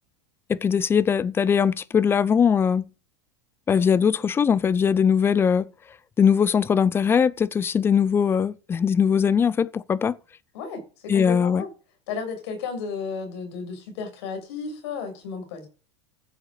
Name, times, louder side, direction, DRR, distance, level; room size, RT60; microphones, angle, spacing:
voice 1, 0.5-2.8 3.7-5.6 6.2-10.2 11.1-11.6, left 7 dB, 15° left, 0.6 m, -21 dB
voice 2, 10.5-11.7 12.1-15.7, left 5 dB, 70° left, 6.6 m, -33 dB
14.0 x 7.9 x 6.6 m
supercardioid pair, 145°, 15 cm